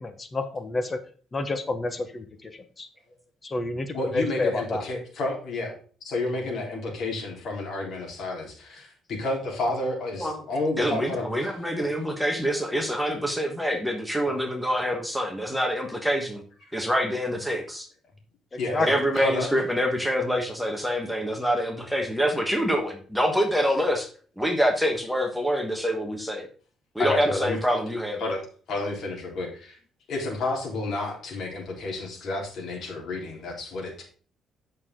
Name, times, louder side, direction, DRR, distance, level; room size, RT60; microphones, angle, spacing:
voice 1, 0.0-1.0 1.3-2.9 3.4-4.8 18.5-19.1, left 2 dB, 20° left, 8 dB, 1.1 m, -30 dB
voice 2, 3.9-5.8 6.0-11.5 11.8-11.9 14.3-14.4 18.6-19.5 27.0-27.6 28.2-28.4 28.7-29.8 30.1-34.0, left 2 dB, 50° left, -1 dB, 3.9 m, -30 dB
voice 3, 10.8-16.4 16.7-17.9 18.9-24.1 24.4-26.5 26.9-28.2, equal, ahead, 3 dB, 1.4 m, -26 dB
8.7 x 6.5 x 3.8 m, 0.41 s
cardioid pair, 150°, 0 cm